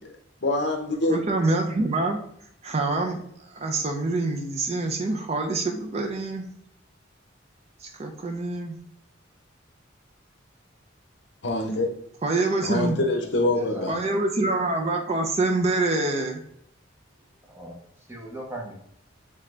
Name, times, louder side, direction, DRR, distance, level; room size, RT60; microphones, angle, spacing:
voice 1, 0.4-1.2 11.4-11.9 12.6-14.0, left 2 dB, 55° left, 3 dB, 0.7 m, -25 dB
voice 2, 1.1-2.2 2.6-6.4 7.8-8.8 12.2-13.0 13.9-16.4, right 2 dB, 30° right, 3 dB, 0.4 m, -26 dB
voice 3, 13.5-14.2 17.5-17.8 18.1-18.7, left 1 dB, 10° right, -2 dB, 1.0 m, -36 dB
3.7 x 3.3 x 3.2 m, 0.72 s
head